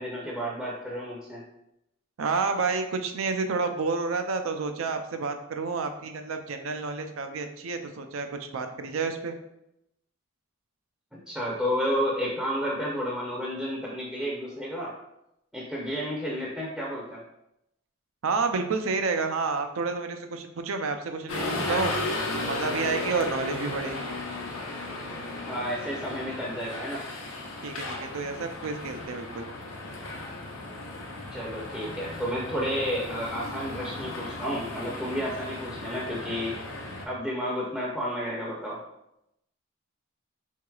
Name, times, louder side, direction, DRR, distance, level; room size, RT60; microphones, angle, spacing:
voice 1, 0.0-1.4 11.1-14.9 15.5-17.2 25.5-27.0 31.3-36.5 37.1-38.8, equal, ahead, -6 dB, 0.6 m, -31 dB
voice 2, 2.2-9.4 18.2-21.9 22.4-24.1 27.6-29.5, right 4 dB, 75° right, 6 dB, 0.5 m, -30 dB
sound 1, 21.3-37.0, left 2 dB, 80° left, 0.7 m, -35 dB
4.5 x 3.8 x 2.3 m, 0.83 s
head